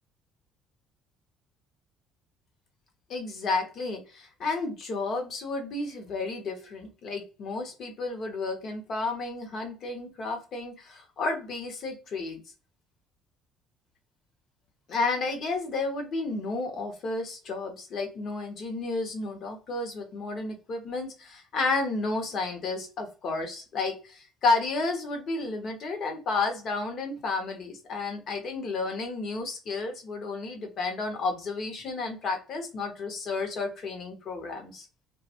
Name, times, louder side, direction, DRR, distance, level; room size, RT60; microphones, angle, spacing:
voice 1, 3.1-12.4 14.9-34.9, left 3 dB, 55° left, 4 dB, 0.9 m, -32 dB
2.3 x 2.2 x 2.7 m, 0.33 s
hypercardioid pair, 55°, 0 cm